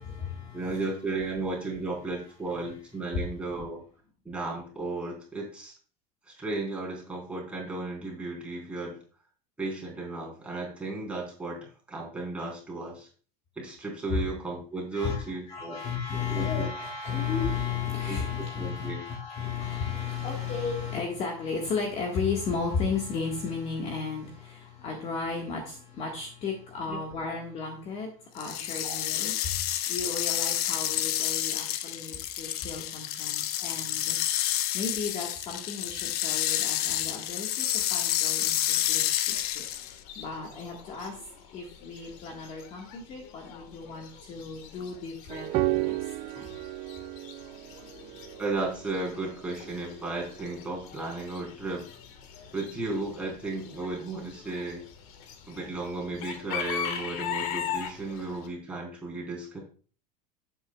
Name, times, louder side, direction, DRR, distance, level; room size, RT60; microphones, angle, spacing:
voice 1, 0.0-0.9 2.6-2.7 14.1-14.2 14.9-28.1 28.3-29.5 29.9-34.2 34.7-39.3 40.1-41.1 41.5-45.9 46.3-46.5, left 5 dB, 30° left, 0 dB, 1.6 m, -34 dB
voice 2, 0.5-3.8 4.2-5.7 6.3-9.0 9.6-13.1 13.6-15.8 16.3-16.7 18.1-18.2 18.6-19.0 26.9-27.0 27.3-27.4 28.8-29.0 48.4-51.9 52.5-54.8 55.5-59.6, right 2 dB, 5° right, -4 dB, 3.9 m, -34 dB
sound 1, 28.4-40.0, left 12 dB, 80° left, 0.8 m, -29 dB
Chicken rooster / Bird, 39.3-58.5, left 8 dB, 60° left, 1.6 m, -41 dB
sound 2, 45.3-50.3, right 18 dB, 35° right, 0.3 m, -33 dB
11.5 x 8.3 x 2.3 m, 0.40 s
supercardioid pair, 160°, 19 cm